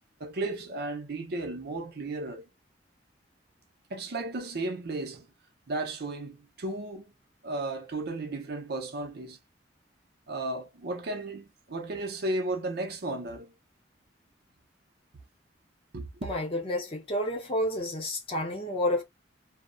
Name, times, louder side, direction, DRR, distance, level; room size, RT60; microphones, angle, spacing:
voice 1, 0.2-2.4 3.9-5.3 5.7-7.0 7.4-9.4 10.3-13.5 15.9-16.3, right 2 dB, 60° right, 0.6 m, -34 dB
voice 2, 16.2-19.0, left 1 dB, 30° left, 0.7 m, -30 dB
2.5 x 2.0 x 2.4 m
head